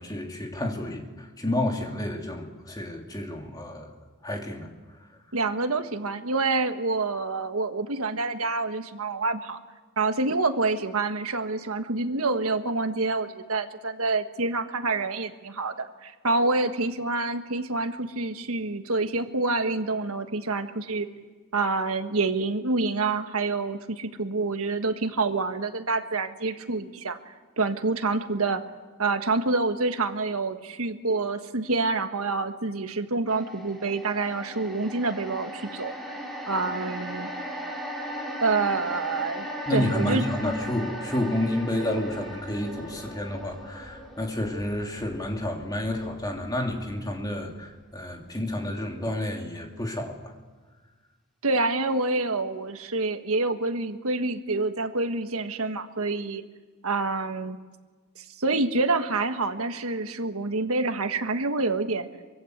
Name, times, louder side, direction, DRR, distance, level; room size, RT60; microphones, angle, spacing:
voice 1, 0.0-3.9 4.2-4.7 39.7-50.2, left 1 dB, 20° left, 1 dB, 3.1 m, -30 dB
voice 2, 5.3-9.6 10.0-21.1 21.5-27.2 27.6-28.6 29.0-36.2 36.5-37.3 38.4-40.2 51.4-56.4 56.8-57.6 58.1-62.1, right 3 dB, 80° right, 7 dB, 1.6 m, -27 dB
sound 1, 33.3-47.6 48.0-48.1, equal, ahead, 3.9 m, -38 dB
24.5 x 24.0 x 8.1 m, 1.4 s
head